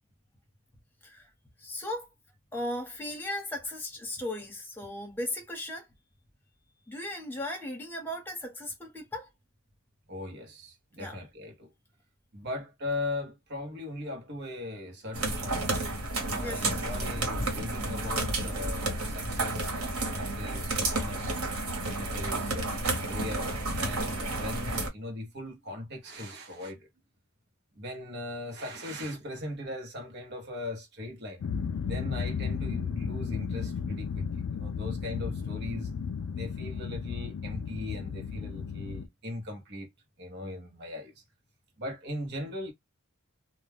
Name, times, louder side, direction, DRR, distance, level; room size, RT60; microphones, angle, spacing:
voice 1, 1.6-2.1 2.5-5.9 6.9-9.3 11.0-11.2 16.4-16.9, left 1 dB, 10° left, 1.0 m, -37 dB
voice 2, 10.1-11.7 12.3-15.7 16.2-19.7 20.1-21.3 21.8-26.9 27.7-31.5 31.8-35.9 36.3-39.9 40.2-41.1 41.8-42.7, left 1 dB, 50° right, 0.9 m, -39 dB
sound 1, 15.1-24.9, right 2 dB, 90° right, 1.1 m, -31 dB
sound 2, 31.4-39.1, left 6 dB, 70° left, 0.4 m, -34 dB
2.2 x 2.2 x 3.3 m
head